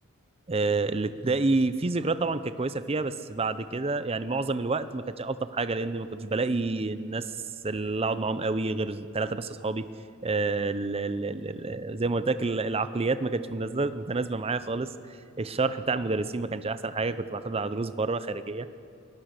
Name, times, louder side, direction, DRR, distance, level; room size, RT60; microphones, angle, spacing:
voice 1, 0.5-7.3 7.6-9.9 10.2-14.9 15.4-18.7, right 3 dB, 30° right, 12 dB, 0.6 m, -28 dB
22.5 x 19.0 x 6.6 m, 2.3 s
head